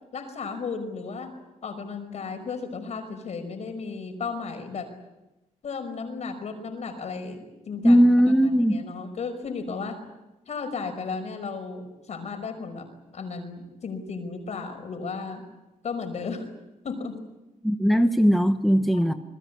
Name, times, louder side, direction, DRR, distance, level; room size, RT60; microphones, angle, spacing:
voice 1, 0.1-1.3 1.6-4.9 5.6-8.1 8.4-10.0 10.5-12.9 13.1-15.5 15.8-16.5 16.8-17.2 18.9-19.2, left 4 dB, 50° left, 8 dB, 5.3 m, -34 dB
voice 2, 7.8-8.8 17.6-19.1, equal, ahead, 7 dB, 1.0 m, -19 dB
27.5 x 20.5 x 8.4 m, 1.0 s
cardioid pair, 140°, 14 cm